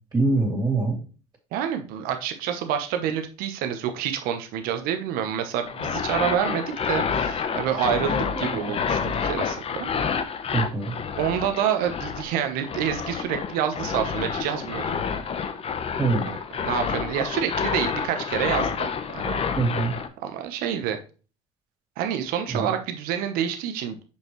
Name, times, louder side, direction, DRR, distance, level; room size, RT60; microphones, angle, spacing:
voice 1, 0.1-1.0 8.3-8.7 10.5-10.9 16.0-16.3 19.6-20.0 22.5-22.7, right 3 dB, 25° right, -4 dB, 2.8 m, -24 dB
voice 2, 1.5-9.9 11.2-15.0 16.6-18.9 19.1-19.4 20.2-21.0 22.0-24.0, right 9 dB, 70° right, 7 dB, 1.0 m, -27 dB
sound 1, 5.7-20.1, left 6 dB, 40° left, 0.9 m, -29 dB
6.7 x 5.4 x 3.1 m, 0.35 s
supercardioid pair, 85°, 16 cm